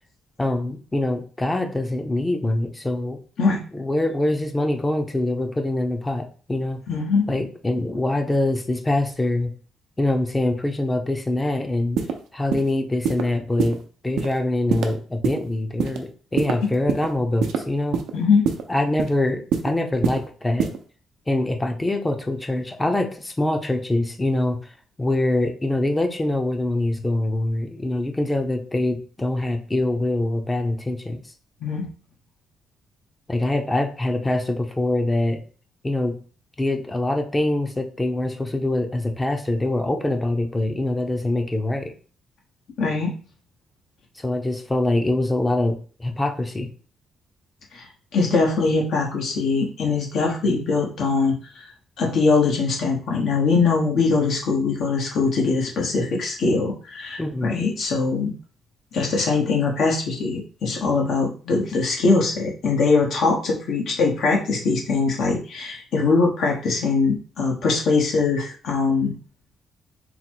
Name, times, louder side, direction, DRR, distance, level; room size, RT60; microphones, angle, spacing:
voice 1, 0.4-3.2 3.7-6.8 7.3-9.5 10.0-12.0 12.3-18.0 18.7-20.7 21.3-24.7 25.0-31.2 33.3-35.4 35.8-36.2 36.6-41.9 44.2-46.7 57.2-57.6, left 2 dB, 15° left, 5 dB, 0.6 m, -24 dB
voice 2, 6.9-7.3 18.1-18.5 31.6-31.9 42.8-43.1 47.7-47.9 48.1-51.6 52.0-58.3 58.9-69.1, left 4 dB, 70° left, -1 dB, 1.0 m, -22 dB
sound 1, 12.0-12.1 12.5-12.7 13.0-13.2 13.6-13.7 14.2-14.3 14.7-14.9 15.2-15.4 15.8-16.0 16.4-17.1 17.4-17.6 17.9-18.1 18.5-18.6 19.0-19.2 19.5-19.7 20.0-20.2 20.6-20.8, right 7 dB, 80° right, 0.6 m, -23 dB
3.9 x 2.0 x 4.4 m, 0.40 s
cardioid pair, 90°, 0 cm